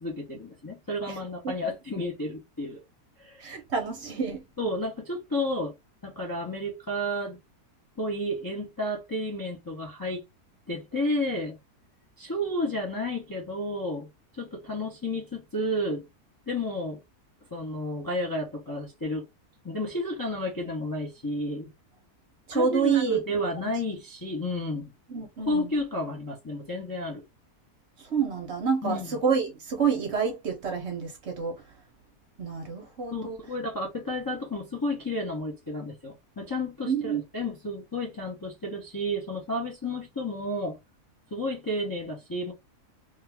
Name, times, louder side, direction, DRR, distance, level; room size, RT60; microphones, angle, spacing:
voice 1, 0.0-2.8 3.2-3.4 4.6-5.7 6.0-7.4 8.0-10.2 10.7-11.6 12.2-14.1 14.4-16.1 16.5-17.0 17.5-19.2 19.6-21.7 22.5-24.9 25.5-27.2 28.8-29.2 33.1-40.8 41.3-42.5, left 1 dB, 30° left, 0.4 m, -31 dB
voice 2, 3.4-4.4 22.5-23.2 25.1-25.7 28.1-31.6 32.4-33.4 36.9-37.2, right 6 dB, 55° right, 0.9 m, -28 dB
2.6 x 2.4 x 3.3 m
omnidirectional pair, 1.6 m